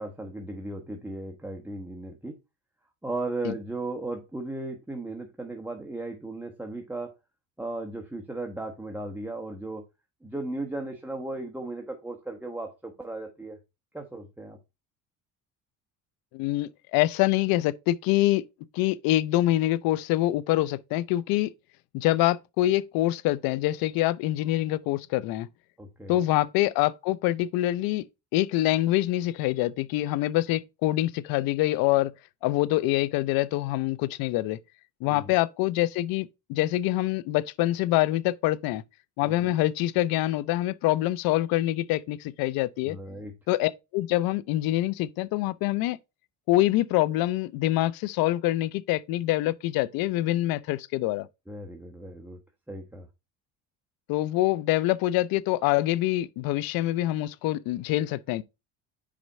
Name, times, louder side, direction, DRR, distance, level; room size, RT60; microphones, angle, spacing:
voice 1, 0.0-2.4 3.0-7.2 7.6-9.8 10.2-13.6 13.9-14.6 25.8-26.3 35.0-35.3 39.2-39.6 42.8-43.3 51.5-52.4 52.7-53.1, right 2 dB, 5° right, 1.1 m, -36 dB
voice 2, 16.3-18.4 18.7-21.5 21.9-25.5 26.1-28.0 28.3-32.1 32.4-34.6 35.0-38.8 39.2-43.0 43.5-46.0 46.5-51.3 54.1-58.4, left 16 dB, 75° left, 0.6 m, -25 dB
5.1 x 4.9 x 4.2 m
supercardioid pair, 95°, 35 cm